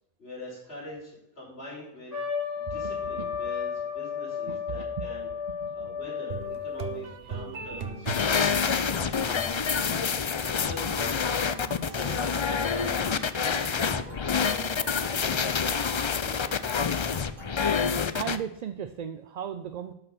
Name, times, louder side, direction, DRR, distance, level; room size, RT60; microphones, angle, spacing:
voice 1, 0.2-2.1 2.5-5.3 5.7-11.3 11.7-15.7 16.2-16.8, left 1 dB, 80° left, -7 dB, 5.3 m, -44 dB
Trumpet, 2.1-7.1, left 7 dB, 55° left, 3.6 m, -33 dB
voice 2, 2.7-3.3 4.5-4.6 5.0-5.1 5.6-5.9 7.7-7.8 8.5-8.6 11.5-11.8 18.1-19.9, right 8 dB, 50° right, 8 dB, 0.5 m, -37 dB
sound 1, 6.3-17.8, right 5 dB, 70° right, 1.1 m, -43 dB
sound 2, 8.1-18.4, left 6 dB, 40° left, 0.4 m, -27 dB
11.5 x 5.9 x 5.9 m, 0.87 s
omnidirectional pair, 1.0 m